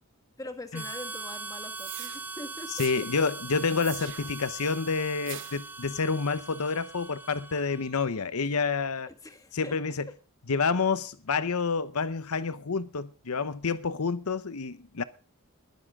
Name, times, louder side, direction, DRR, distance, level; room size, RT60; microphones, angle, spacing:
voice 1, 0.4-2.9 9.1-9.9, left 1 dB, 15° left, 1.7 m, -43 dB
Harmonica, 0.7-8.0, right 4 dB, 10° right, 0.6 m, -41 dB
sound 1, 1.8-2.2 2.8-3.0 3.8-4.4 5.3-5.7, right 13 dB, 55° right, 1.0 m, -41 dB
voice 2, 2.7-9.1 9.5-10.1 10.5-15.0, left 4 dB, 80° left, 0.8 m, -28 dB
21.0 x 10.0 x 3.6 m
head